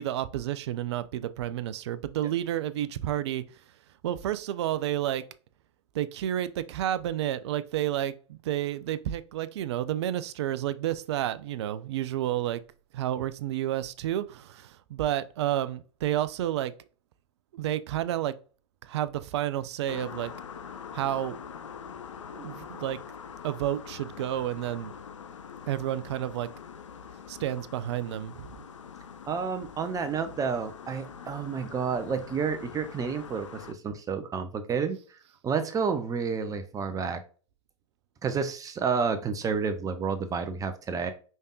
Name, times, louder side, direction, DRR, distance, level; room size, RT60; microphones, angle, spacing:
voice 1, 0.0-3.4 4.0-5.2 5.9-12.6 12.9-16.7 17.5-18.4 18.8-20.3 20.9-21.4 22.3-23.0 23.4-24.9 25.7-26.5 27.3-28.5, right 12 dB, 65° right, 0.5 m, -30 dB
sound 1, 19.9-33.7, left 7 dB, 85° left, 0.5 m, -44 dB
voice 2, 29.3-35.0 35.4-37.2 38.2-41.1, right 5 dB, 20° right, 0.6 m, -30 dB
5.3 x 3.5 x 2.3 m
hypercardioid pair, 95°, 15 cm